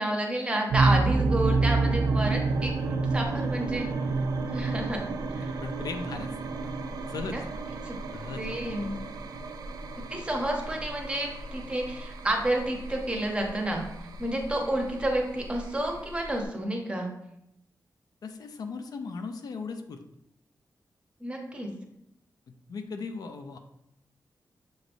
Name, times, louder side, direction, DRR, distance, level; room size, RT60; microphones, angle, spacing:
voice 1, 0.0-3.9 4.5-5.0 5.3-5.5 7.2-7.4 7.8-8.0 8.3-9.0 10.1-13.8 14.2-17.1 21.2-21.7, right 1 dB, 15° right, 1 dB, 0.7 m, -30 dB
sound 1, 0.7-16.4, right 3 dB, 75° right, 0.4 m, -30 dB
voice 2, 5.4-6.7 7.1-7.4 8.1-8.5 18.2-20.0 22.5-23.6, left 4 dB, 70° left, 7 dB, 0.4 m, -38 dB
6.4 x 3.1 x 2.6 m, 0.80 s
wide cardioid pair, 150°, 7 cm